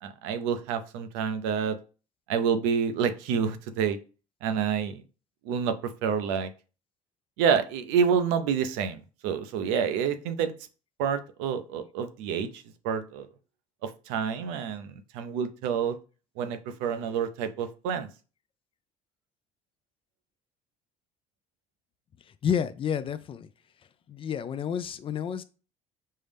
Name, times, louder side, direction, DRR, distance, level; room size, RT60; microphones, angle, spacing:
voice 1, 0.0-1.8 2.3-4.0 4.4-5.0 5.5-5.7 6.0-6.5 7.4-10.5 11.0-13.3 13.8-16.0 16.4-18.1, right 7 dB, 90° right, 0.5 m, -28 dB
voice 2, 22.4-23.5 24.1-25.4, left 8 dB, 35° left, 0.4 m, -30 dB
5.4 x 2.0 x 3.3 m
supercardioid pair, 95°, 15 cm